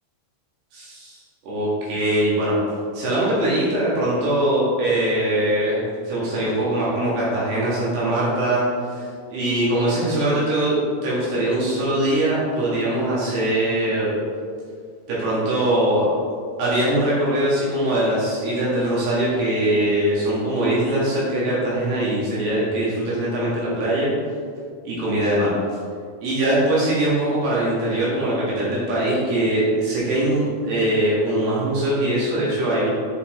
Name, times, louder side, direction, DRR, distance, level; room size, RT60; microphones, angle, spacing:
voice 1, 0.7-1.2 1.4-2.6 2.9-10.8 11.0-14.1 15.1-16.1 16.6-24.1 24.8-25.5 26.2-32.9, right 1 dB, 75° right, -8 dB, 4.0 m, -22 dB
8.2 x 5.1 x 3.8 m, 2.2 s
omnidirectional pair, 4.8 m